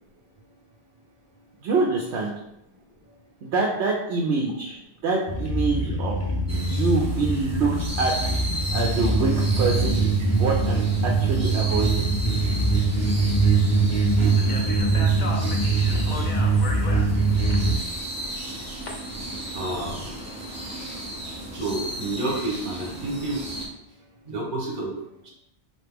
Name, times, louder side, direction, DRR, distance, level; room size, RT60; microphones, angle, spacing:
voice 1, 1.6-2.3 3.4-6.2 6.7-7.7 8.0-8.1 8.7-12.1, right 3 dB, 75° right, -1 dB, 0.9 m, -25 dB
sound 1, 5.3-17.7, right 3 dB, 15° left, 0.7 m, -22 dB
sound 2, 6.5-23.7, equal, 15° right, 0.8 m, -35 dB
Speech, 14.3-18.9, left 2 dB, 50° left, 0.7 m, -37 dB
voice 2, 19.5-20.1 21.5-23.4 24.3-24.9, right 2 dB, 50° right, -1 dB, 1.2 m, -29 dB
4.4 x 2.9 x 3.5 m, 0.80 s
omnidirectional pair, 1.1 m